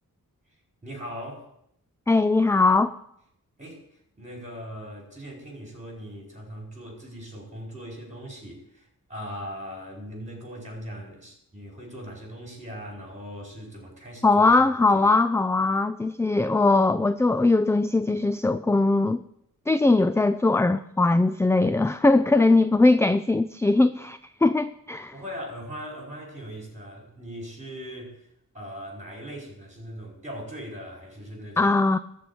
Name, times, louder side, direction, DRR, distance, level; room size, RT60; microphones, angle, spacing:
voice 1, 0.8-1.5 3.6-3.8 4.2-15.0 25.1-28.2 28.5-31.8, equal, 20° right, -1 dB, 4.9 m, -40 dB
voice 2, 2.1-2.9 14.2-19.2 19.7-25.1 31.6-32.0, left 3 dB, 10° left, 12 dB, 0.3 m, -20 dB
13.5 x 4.6 x 8.6 m, 0.74 s
wide cardioid pair, 75°, 34 cm